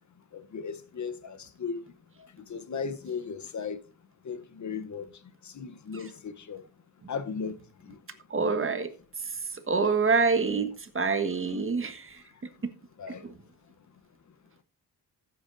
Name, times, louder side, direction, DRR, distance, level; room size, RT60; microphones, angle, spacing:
voice 1, 0.3-1.9 2.2-3.8 4.2-6.6 7.1-8.0 13.0-13.2, left 5 dB, 50° left, 0.9 m, -37 dB
voice 2, 8.3-8.9 9.2-12.2 12.6-12.7 13.1-13.3, right 4 dB, 35° right, 1.5 m, -27 dB
15.5 x 8.9 x 2.6 m
cardioid pair, 100°, 38 cm